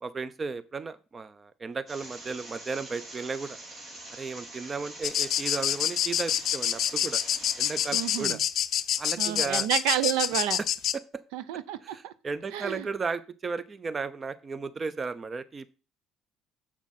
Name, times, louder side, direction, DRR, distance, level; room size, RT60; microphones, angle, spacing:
voice 1, 0.0-3.6 4.1-7.2 7.6-8.4 9.0-9.7 11.8-15.7, right 4 dB, 35° right, 15 dB, 0.7 m, -35 dB
sound 1, 1.9-8.3, right 2 dB, 50° right, 2.7 m, -44 dB
sound 2, 5.0-11.0, left 10 dB, 60° left, 0.5 m, -27 dB
voice 2, 7.9-8.4 9.2-10.6 11.3-12.1 12.5-12.9, right 12 dB, 80° right, 15 dB, 0.5 m, -30 dB
7.5 x 5.9 x 4.2 m, 0.33 s
hypercardioid pair, 65°, 0 cm